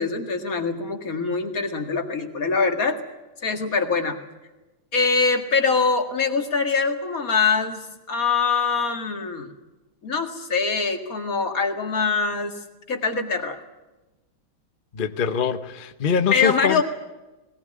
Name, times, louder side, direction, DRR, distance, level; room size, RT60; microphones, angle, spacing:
voice 1, 0.0-3.0 3.4-4.2 4.9-9.5 10.0-12.6 12.9-13.6 16.3-16.8, left 5 dB, 40° left, 4 dB, 2.4 m, -23 dB
voice 2, 14.9-16.8, left 7 dB, 55° left, 9 dB, 0.5 m, -23 dB
20.5 x 18.5 x 9.7 m, 1.1 s
omnidirectional pair, 2.3 m